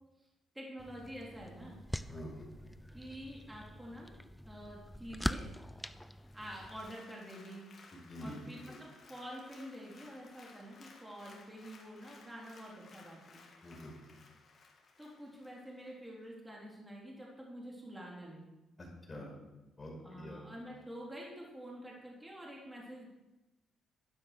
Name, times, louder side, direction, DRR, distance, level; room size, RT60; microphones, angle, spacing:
voice 1, 0.5-1.8 2.9-4.1 4.4-5.5 6.3-7.6 8.2-8.7 9.1-13.4 15.0-18.4 20.0-23.1, equal, 10° right, -3 dB, 3.9 m, -48 dB
sound 1, 0.8-6.9, left 1 dB, 5° left, 0.6 m, -43 dB
voice 2, 2.1-2.5 7.9-8.8 13.6-13.9 18.8-19.3 19.8-20.4, left 1 dB, 25° left, -1 dB, 5.5 m, -46 dB
Applause, 6.2-15.9 16.4-16.5, left 4 dB, 50° left, 2.8 m, -59 dB
12.0 x 9.6 x 6.9 m, 1.0 s
cardioid pair, 90°, 0 cm